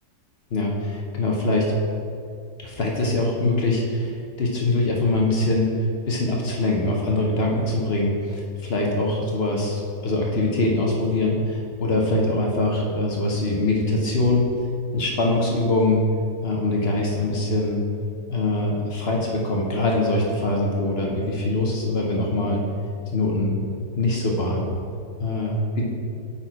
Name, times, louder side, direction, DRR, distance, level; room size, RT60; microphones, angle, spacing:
voice 1, 0.5-1.7 2.6-5.7 6.1-14.5 14.9-16.0 16.4-17.8 18.3-22.6 23.1-24.7 25.2-25.8, left 2 dB, 50° left, -1 dB, 0.7 m, -23 dB
8.2 x 4.3 x 4.5 m, 2.4 s
omnidirectional pair, 2.0 m